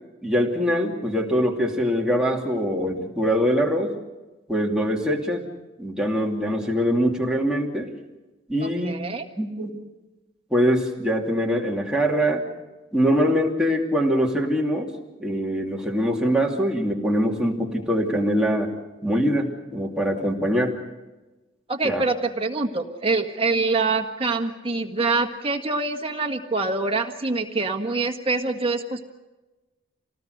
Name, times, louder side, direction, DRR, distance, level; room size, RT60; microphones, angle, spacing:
voice 1, 0.2-3.9 4.5-5.4 5.8-7.9 8.5-9.0 9.4-9.8 10.5-12.4 12.9-14.9 15.2-18.7 19.0-20.7 21.8-22.0, equal, 5° right, -2 dB, 2.7 m, -23 dB
voice 2, 8.6-9.3 21.7-29.1, right 3 dB, 30° right, 4 dB, 1.7 m, -25 dB
27.0 x 19.0 x 6.6 m, 1.1 s
head